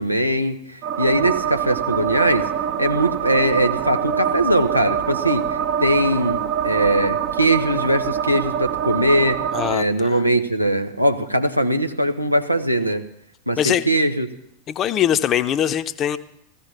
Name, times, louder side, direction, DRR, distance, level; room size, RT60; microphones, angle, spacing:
voice 1, 0.0-2.5 2.8-9.4 9.7-13.0 13.5-14.3, right 1 dB, 90° right, 6 dB, 1.3 m, -21 dB
sound 1, 0.8-9.7, right 8 dB, 40° right, 1.0 m, -25 dB
voice 2, 9.5-10.2 13.6-13.9 14.7-16.2, left 10 dB, 30° left, 12 dB, 0.9 m, -22 dB
15.5 x 15.0 x 6.1 m, 0.73 s
figure-of-eight pair, 90°, 0 cm